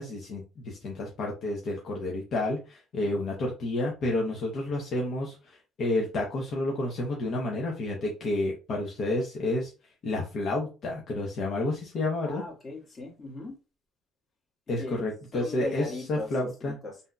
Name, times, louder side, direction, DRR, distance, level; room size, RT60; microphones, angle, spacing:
voice 1, 0.0-9.7 10.0-12.4 14.7-16.8, left 2 dB, 55° left, 0.9 m, -30 dB
voice 2, 12.2-13.6 14.8-15.0 15.3-17.0, left 2 dB, 35° left, 1.6 m, -38 dB
3.5 x 2.7 x 2.3 m
cardioid pair, 100°, 0 cm